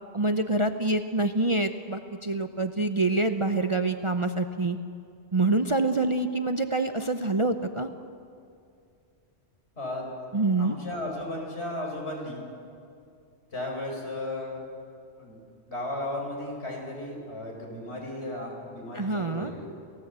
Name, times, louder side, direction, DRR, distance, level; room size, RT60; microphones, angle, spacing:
voice 1, 0.1-4.8 5.3-7.9 10.3-10.8 18.9-19.5, right 2 dB, 30° right, 7 dB, 0.7 m, -26 dB
voice 2, 10.6-12.4 13.5-14.6 15.2-15.4 15.7-19.8, left 1 dB, 65° left, -1 dB, 5.4 m, -35 dB
29.5 x 16.5 x 8.3 m, 2.4 s
omnidirectional pair, 1.2 m